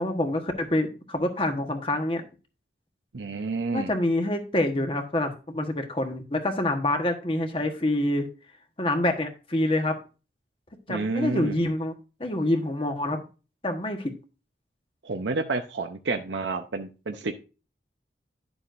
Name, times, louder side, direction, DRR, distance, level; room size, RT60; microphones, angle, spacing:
voice 1, 0.0-2.3 3.7-8.3 8.8-10.0 10.9-11.9 12.2-13.2 13.6-14.1, left 1 dB, 30° left, 5 dB, 1.3 m, -26 dB
voice 2, 3.1-3.9 10.9-11.6 15.0-17.4, right 3 dB, 85° right, 5 dB, 0.7 m, -29 dB
11.0 x 7.1 x 2.6 m, 0.32 s
head